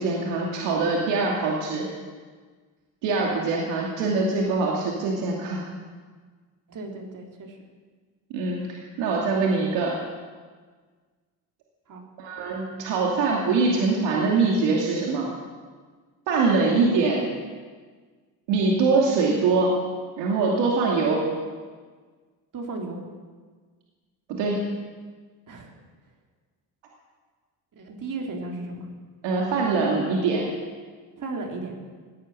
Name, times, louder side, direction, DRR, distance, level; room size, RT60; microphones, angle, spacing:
voice 1, 0.0-1.9 3.0-5.7 8.3-9.9 12.2-15.3 16.3-17.2 18.5-19.8 20.2-21.2 24.3-24.6 29.2-30.4, right 3 dB, 85° right, -2 dB, 2.7 m, -23 dB
voice 2, 6.7-7.6 11.9-12.0 22.5-23.0 25.5-25.7 27.7-28.9 31.2-31.8, right 3 dB, 50° right, 1 dB, 3.6 m, -35 dB
17.0 x 9.6 x 8.6 m, 1.5 s
supercardioid pair, 85°, 42 cm